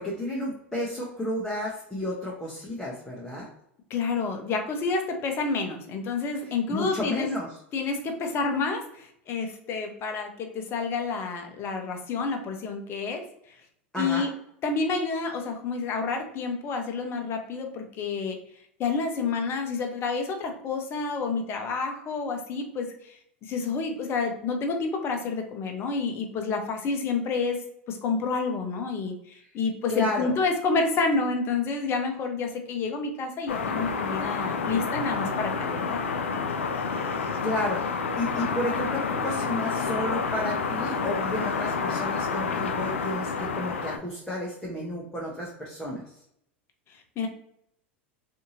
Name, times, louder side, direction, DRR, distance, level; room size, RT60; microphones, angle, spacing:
voice 1, 0.0-3.5 6.7-7.5 13.9-14.3 29.9-30.3 37.4-37.8 38.2-46.0, left 1 dB, 10° left, -4 dB, 0.8 m, -32 dB
voice 2, 3.9-7.3 7.7-13.2 14.0-14.3 14.6-18.4 18.8-27.6 27.9-36.0 47.2-47.3, left 4 dB, 40° left, 4 dB, 0.7 m, -29 dB
sound 1, 33.5-44.0, left 5 dB, 85° left, 0.4 m, -29 dB
2.7 x 2.6 x 2.7 m, 0.73 s
hypercardioid pair, 90°, 7 cm